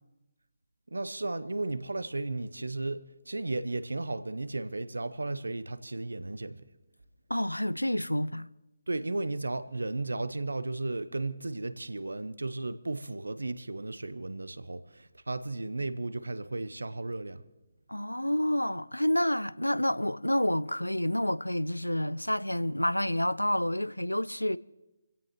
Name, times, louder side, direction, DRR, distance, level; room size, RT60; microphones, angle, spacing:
voice 1, 0.9-6.6 8.9-17.4, right 2 dB, 70° right, 0.8 m, -34 dB
voice 2, 7.3-8.5 17.9-24.6, left 1 dB, 90° left, 0.4 m, -29 dB
25.5 x 16.5 x 3.1 m
figure-of-eight pair, 145°, 0 cm